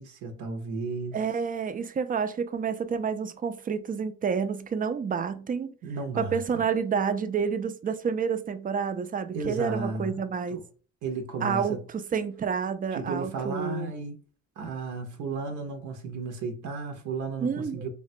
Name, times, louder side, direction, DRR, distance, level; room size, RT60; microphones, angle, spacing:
voice 1, 0.0-1.2 5.8-6.6 9.3-10.2 10.5-10.6 11.0-11.8 12.9-14.2 14.6-17.9, right 4 dB, 80° right, 0.6 m, -34 dB
voice 2, 1.1-5.7 6.2-10.6 11.4-13.9 17.4-17.9, right 6 dB, 30° right, 0.3 m, -29 dB
3.3 x 2.1 x 2.6 m
cardioid pair, 90°, 30 cm